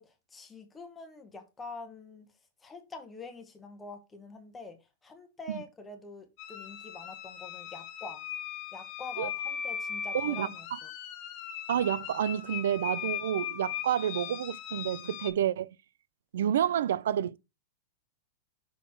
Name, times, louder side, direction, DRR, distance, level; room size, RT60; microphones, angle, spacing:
voice 1, 0.0-2.3 2.6-8.2 8.7-10.9, left 3 dB, 10° left, 1.1 m, -45 dB
sound 1, 6.4-15.3, left 10 dB, 35° left, 0.9 m, -38 dB
voice 2, 10.1-10.5 11.7-15.7 16.3-17.4, right 10 dB, 85° right, 0.3 m, -29 dB
5.9 x 4.0 x 4.5 m
supercardioid pair, 170°, 0 cm